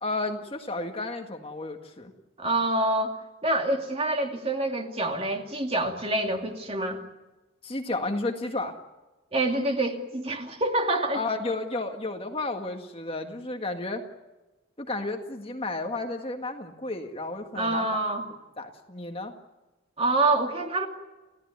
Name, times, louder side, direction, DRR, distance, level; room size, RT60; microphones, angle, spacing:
voice 1, 0.0-2.1 7.6-8.8 11.1-14.0 14.8-18.0 18.6-19.3, left 2 dB, 25° left, 4 dB, 1.8 m, -32 dB
voice 2, 2.4-3.1 3.4-7.0 9.3-11.2 17.5-18.3 20.0-20.9, right 2 dB, 30° right, 3 dB, 2.6 m, -26 dB
29.5 x 16.5 x 9.5 m, 1.1 s
head